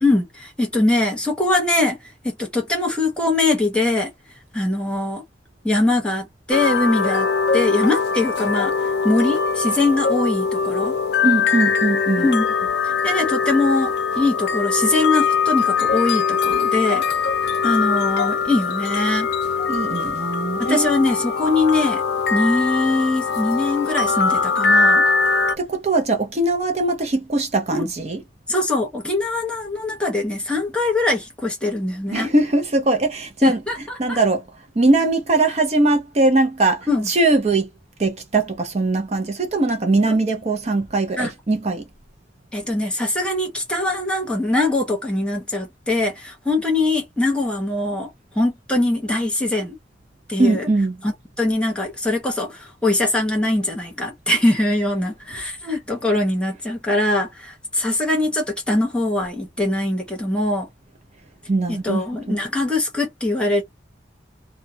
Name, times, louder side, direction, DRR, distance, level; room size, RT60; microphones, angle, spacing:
voice 1, 0.0-2.0 2.2-4.1 4.5-5.2 5.6-7.3 7.5-8.7 9.0-10.9 12.2-12.5 12.8-17.0 17.6-19.3 20.6-22.0 22.3-25.0 27.7-27.9 28.5-32.3 33.4-34.2 36.9-37.1 40.1-40.2 41.2-41.3 42.5-48.1 48.3-49.7 50.3-50.7 51.0-60.7 61.7-63.6, left 2 dB, 5° left, 0.9 m, -22 dB
sound 1, 6.5-25.6, left 5 dB, 70° left, 0.4 m, -21 dB
voice 2, 11.2-12.3 19.7-20.9 25.6-28.2 32.1-33.6 34.0-34.4 34.8-37.7 38.0-41.8 50.4-51.0 61.5-62.4, right 2 dB, 35° right, 0.6 m, -20 dB
2.4 x 2.2 x 2.7 m
head